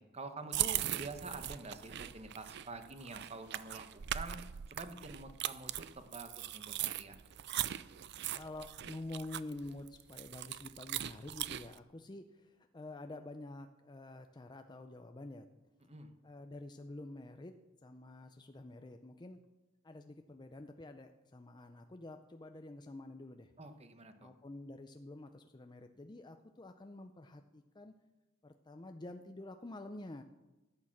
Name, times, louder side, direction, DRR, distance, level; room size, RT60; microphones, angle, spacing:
voice 1, 0.0-4.4 4.7-7.2 15.9-16.1 23.6-24.3, right 3 dB, 35° right, 8 dB, 1.1 m, -47 dB
sound 1, 0.5-11.8, right 12 dB, 60° right, 0.5 m, -40 dB
voice 2, 8.3-15.5 16.2-17.5 17.8-19.4 19.8-23.5 24.2-27.9 28.4-30.2, left 2 dB, 20° left, 6 dB, 0.5 m, -48 dB
13.5 x 8.8 x 7.2 m, 1.1 s
head